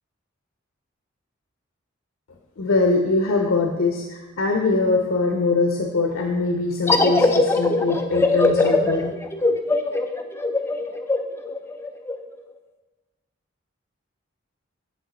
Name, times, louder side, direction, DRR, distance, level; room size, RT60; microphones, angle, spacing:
voice 1, 2.6-9.1, left 3 dB, 90° left, 3 dB, 0.7 m, -22 dB
sound 1, 6.9-12.2, left 2 dB, 10° left, 0.5 m, -21 dB
7.9 x 7.3 x 4.1 m, 1.2 s
head